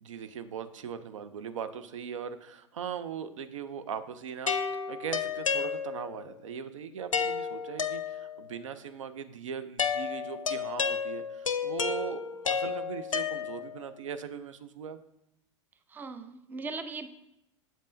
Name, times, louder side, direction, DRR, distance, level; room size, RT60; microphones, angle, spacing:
voice 1, 0.0-15.0, right 7 dB, 75° right, 12 dB, 0.4 m, -39 dB
sound 1, 4.5-6.2 7.1-8.5 9.8-13.9, left 6 dB, 90° left, 0.4 m, -32 dB
voice 2, 15.9-17.1, right 3 dB, 10° right, 10 dB, 0.4 m, -39 dB
7.3 x 5.3 x 2.6 m, 0.85 s
figure-of-eight pair, 90°, 17 cm